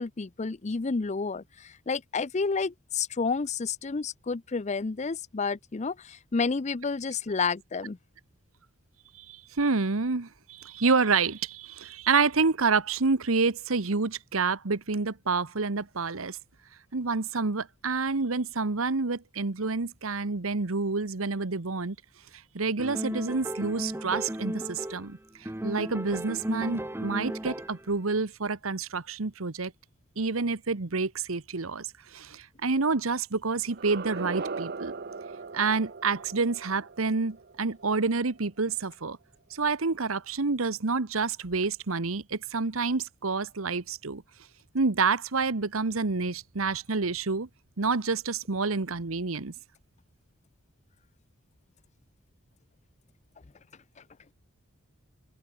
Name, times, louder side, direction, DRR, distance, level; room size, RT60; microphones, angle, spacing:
voice 1, 0.0-8.0, left 4 dB, 35° left, 0.5 m, -30 dB
voice 2, 9.2-16.4 16.9-22.0 22.5-25.2 25.6-29.7 30.2-34.9 35.5-39.2 39.5-44.2 44.7-47.5 47.8-49.5, right 4 dB, 80° right, 1.2 m, -28 dB
sound 1, 22.8-25.1 25.4-27.9, right 1 dB, 10° right, 1.0 m, -35 dB
sound 2, 33.7-38.6, right 4 dB, 50° right, 0.8 m, -39 dB
open air
head